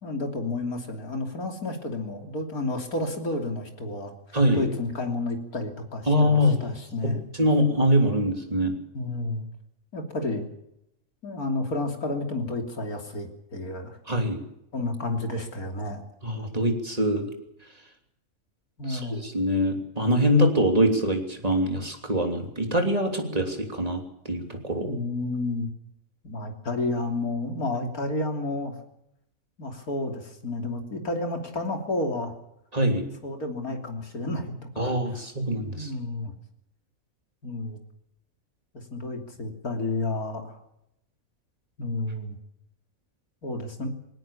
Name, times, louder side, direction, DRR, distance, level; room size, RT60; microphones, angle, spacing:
voice 1, 0.0-7.3 8.9-9.4 9.9-10.5 11.2-14.0 14.7-16.0 18.8-19.2 24.8-25.7 26.2-28.8 29.6-32.3 33.2-35.0 35.7-36.3 37.4-37.8 38.9-40.6 41.8-42.4 43.4-43.9, left 2 dB, 85° left, 4 dB, 3.6 m, -31 dB
voice 2, 4.3-4.7 6.1-6.6 7.0-7.1 7.4-8.7 14.1-14.4 16.2-17.3 18.9-24.9 32.7-33.1 34.8-35.9, equal, 25° right, 4 dB, 3.2 m, -24 dB
20.5 x 18.5 x 7.2 m, 0.81 s
omnidirectional pair, 1.5 m